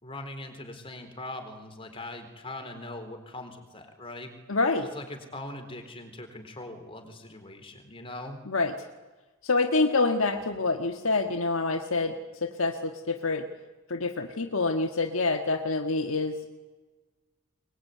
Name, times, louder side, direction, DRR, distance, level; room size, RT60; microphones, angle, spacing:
voice 1, 0.0-4.4 4.9-8.4, left 2 dB, 25° left, 5 dB, 4.1 m, -41 dB
voice 2, 4.5-4.9 8.5-8.8 9.4-13.5 13.9-16.5, left 3 dB, 65° left, 5 dB, 1.6 m, -27 dB
23.0 x 21.5 x 9.5 m, 1.2 s
head